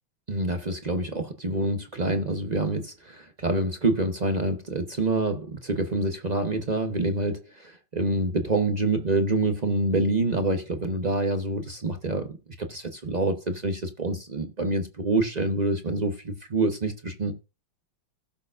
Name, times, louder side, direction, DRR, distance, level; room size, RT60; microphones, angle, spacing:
voice 1, 0.3-17.3, right 2 dB, 55° right, 0.4 m, -27 dB
17.0 x 6.7 x 2.5 m
omnidirectional pair, 2.3 m